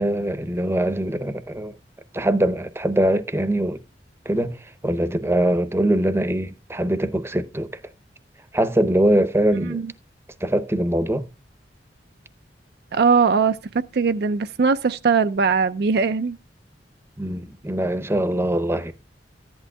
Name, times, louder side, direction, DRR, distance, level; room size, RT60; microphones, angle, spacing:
voice 1, 0.0-1.8 2.1-3.8 4.3-7.8 8.5-9.8 10.4-11.2 17.2-18.9, right 1 dB, 15° right, 0.7 m, -22 dB
voice 2, 12.9-16.4, right 5 dB, 60° right, 0.4 m, -20 dB
14.5 x 11.0 x 2.2 m
head